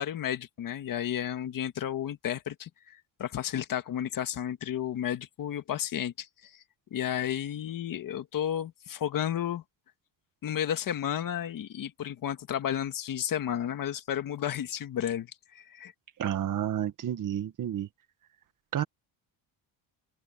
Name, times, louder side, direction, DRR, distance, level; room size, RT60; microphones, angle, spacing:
voice 1, 0.0-6.6 6.9-9.6 10.4-15.9, left 10 dB, 45° left, 1.9 m, -32 dB
voice 2, 16.2-17.9 18.7-18.8, right 10 dB, 45° right, 1.7 m, -30 dB
open air
cardioid pair, 145°, 45 cm